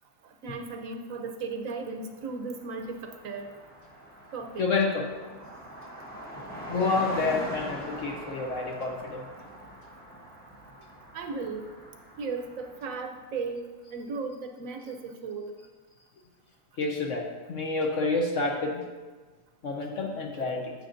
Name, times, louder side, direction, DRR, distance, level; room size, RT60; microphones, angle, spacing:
voice 1, 0.2-3.5 4.3-4.7 11.1-11.7 12.2-13.6 13.9-15.5, right 4 dB, 60° right, 4 dB, 1.1 m, -36 dB
Car passing by, 1.9-2.0 2.2-13.2, right 1 dB, 5° left, 1.1 m, -42 dB
voice 2, 4.6-5.1 6.7-9.3 16.8-18.8 19.6-20.7, left 3 dB, 55° left, 1 dB, 1.0 m, -28 dB
10.0 x 7.4 x 2.6 m, 1.3 s
omnidirectional pair, 1.7 m